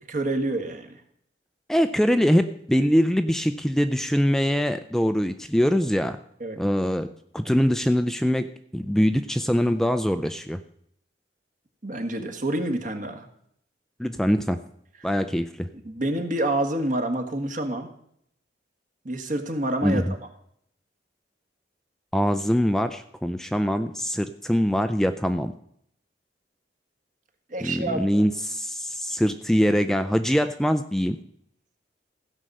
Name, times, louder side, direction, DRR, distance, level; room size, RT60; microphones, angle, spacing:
voice 1, 0.1-1.0 6.4-6.6 11.8-13.3 15.0-15.1 15.8-17.9 19.0-20.0 27.5-28.2, right 1 dB, 50° right, 5 dB, 1.6 m, -28 dB
voice 2, 1.7-6.2 6.6-7.1 7.3-8.5 8.7-10.6 14.0-14.6 15.0-15.7 19.8-20.0 22.1-25.5 27.6-31.2, equal, 5° left, 9 dB, 0.4 m, -23 dB
16.0 x 5.4 x 7.7 m, 0.70 s
head